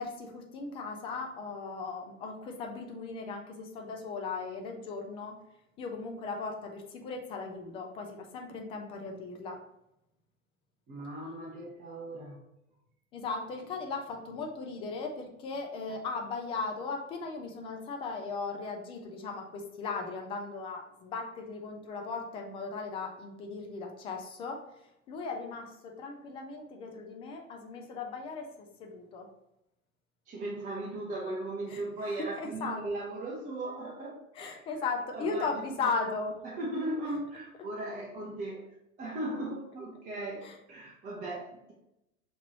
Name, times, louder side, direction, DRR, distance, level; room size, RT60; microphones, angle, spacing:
voice 1, 0.0-5.4 5.8-9.6 13.1-29.3 31.7-32.8 34.3-36.4 40.4-40.6, left 4 dB, 15° left, 2 dB, 0.4 m, -37 dB
voice 2, 10.9-12.4 30.3-34.5 35.1-35.5 36.4-38.6 39.0-41.7, right 2 dB, 20° right, -4 dB, 0.9 m, -37 dB
5.8 x 3.1 x 2.9 m, 0.86 s
figure-of-eight pair, 90°, 42 cm